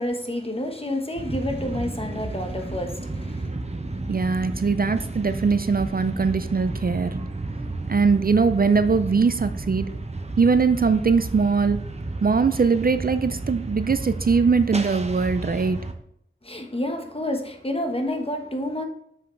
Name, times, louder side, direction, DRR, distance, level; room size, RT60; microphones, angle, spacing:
voice 1, 0.0-3.5 16.4-18.8, left 1 dB, 30° left, 1.2 m, -29 dB
sound 1, 1.2-15.9, right 2 dB, 30° right, 0.8 m, -32 dB
voice 2, 4.1-7.1 7.9-9.9 10.4-11.8 12.2-15.8, right 5 dB, 45° right, 0.4 m, -21 dB
7.2 x 5.8 x 3.2 m
wide cardioid pair, 45°, 20 cm